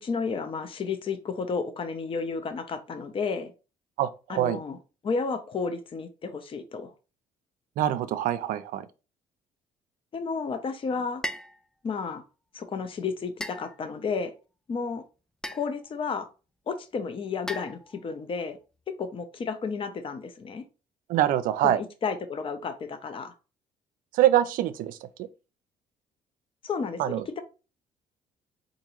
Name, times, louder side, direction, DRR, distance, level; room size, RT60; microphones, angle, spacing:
voice 1, 0.0-3.5 4.3-4.8 5.0-6.9 10.1-11.2 11.8-12.2 12.5-14.3 14.7-15.0 15.5-16.3 16.7-18.6 18.9-20.6 21.6-23.3 26.6-27.4, left 5 dB, 40° left, 0.6 m, -32 dB
voice 2, 4.0-4.6 7.8-8.9 21.1-21.8 24.1-25.0 27.0-27.4, right 12 dB, 75° right, 0.4 m, -24 dB
sound 1, 11.2-11.6 13.4-14.1 15.4-15.9 17.5-18.2, equal, 5° left, 0.3 m, -37 dB
3.7 x 2.6 x 2.9 m
supercardioid pair, 75°, 14 cm